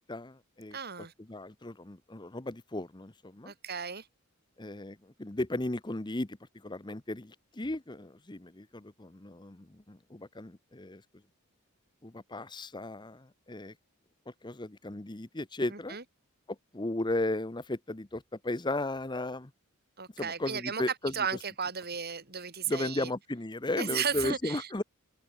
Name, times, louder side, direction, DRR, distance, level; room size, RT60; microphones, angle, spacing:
voice 1, 0.1-0.8 1.2-3.5 4.6-11.0 12.0-13.7 14.4-16.0 16.5-19.5 20.2-21.1 22.7-24.8, left 2 dB, 20° left, 0.9 m, -35 dB
voice 2, 0.7-1.1 3.5-4.1 15.7-16.0 20.0-20.8 21.1-23.1 23.8-24.7, right 7 dB, 45° right, 3.9 m, -35 dB
open air
head